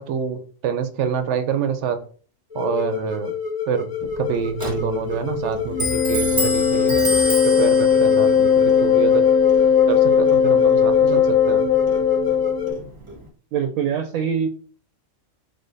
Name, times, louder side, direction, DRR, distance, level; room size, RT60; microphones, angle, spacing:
voice 1, 0.0-2.0 2.5-3.3 3.7-7.0 7.4-9.3 9.9-11.7, right 7 dB, 65° right, 9 dB, 0.8 m, -26 dB
sound 1, 2.5-12.7, left 6 dB, 35° left, 1.1 m, -29 dB
Clock, 4.0-13.3, equal, 25° right, 0.9 m, -31 dB
Wind instrument woodwind instrument, 5.7-12.7, left 7 dB, 65° left, 0.8 m, -17 dB
voice 2, 13.5-14.5, right 7 dB, 85° right, 5 dB, 1.0 m, -23 dB
5.0 x 2.2 x 3.9 m, 0.41 s
omnidirectional pair, 1.4 m